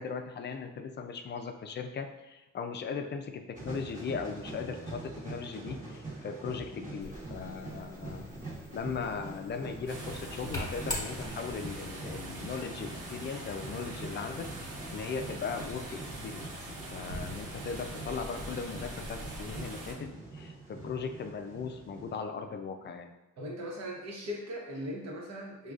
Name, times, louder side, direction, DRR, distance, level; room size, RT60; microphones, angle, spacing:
voice 1, 0.0-8.3 8.7-16.5 16.9-23.1, left 5 dB, 35° left, 7 dB, 0.4 m, -38 dB
sound 1, 3.5-22.2, right 2 dB, 25° right, 1.2 m, -45 dB
sound 2, 7.0-11.7, left 1 dB, 15° left, 1.2 m, -42 dB
sound 3, 9.9-19.9, right 1 dB, 90° right, 0.9 m, -42 dB
voice 2, 23.4-25.7, equal, 60° right, -2 dB, 1.0 m, -39 dB
4.9 x 2.3 x 2.4 m, 1.0 s
cardioid pair, 90°, 30 cm